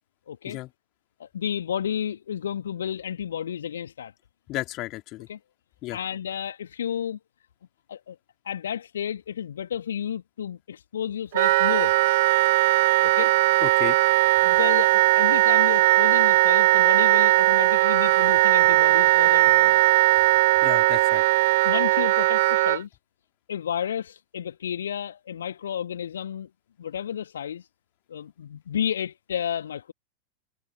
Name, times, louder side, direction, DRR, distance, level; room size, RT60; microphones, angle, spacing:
voice 1, 0.3-0.6 1.2-4.1 5.3-5.4 5.9-7.2 7.9-8.1 8.4-11.9 13.0-13.4 14.4-19.8 21.6-22.9 23.5-26.5 26.8-27.7 28.1-29.9, left 9 dB, 65° left, 1.6 m, -31 dB
voice 2, 4.5-5.3 5.8-6.0 13.6-14.0 20.6-21.2, left 18 dB, 40° left, 2.9 m, -33 dB
Wind instrument woodwind instrument, 11.3-22.8, right 19 dB, 50° right, 0.9 m, -19 dB
figure-of-eight pair, 90°, 0 cm